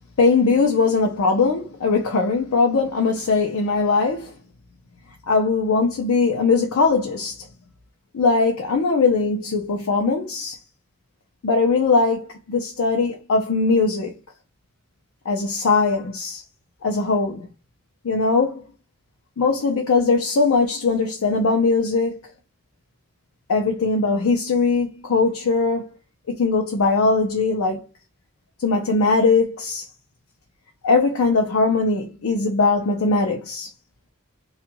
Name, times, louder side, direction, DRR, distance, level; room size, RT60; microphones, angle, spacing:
voice 1, 0.2-4.3 5.3-7.4 8.1-10.6 11.4-14.1 15.3-16.4 16.8-17.5 18.0-18.6 19.4-22.2 23.5-25.9 26.3-27.8 28.6-29.9 30.8-33.7, left 4 dB, 80° left, 0.5 m, -20 dB
2.3 x 2.2 x 2.8 m
head